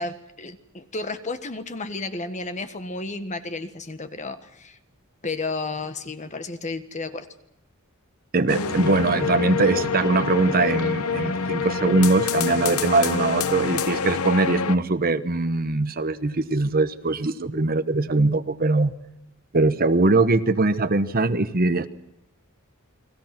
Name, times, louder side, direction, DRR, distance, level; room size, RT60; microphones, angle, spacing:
voice 1, 0.0-4.8 5.2-7.3 14.2-14.3, left 3 dB, 35° left, 9 dB, 1.5 m, -32 dB
voice 2, 8.3-18.9 19.5-21.9, right 2 dB, 45° right, 12 dB, 1.0 m, -21 dB
sound 1, 8.5-14.8, left 5 dB, 90° left, 1.0 m, -26 dB
30.0 x 21.5 x 6.0 m, 0.81 s
head